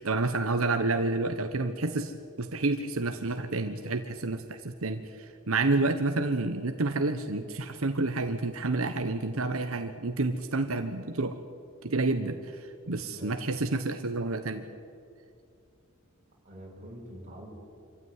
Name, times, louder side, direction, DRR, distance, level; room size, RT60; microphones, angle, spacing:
voice 1, 0.0-11.4 11.8-14.7, right 3 dB, 85° right, 7 dB, 1.1 m, -29 dB
voice 2, 16.4-17.5, equal, 35° right, -2 dB, 6.1 m, -45 dB
26.0 x 15.5 x 9.7 m, 2.4 s
head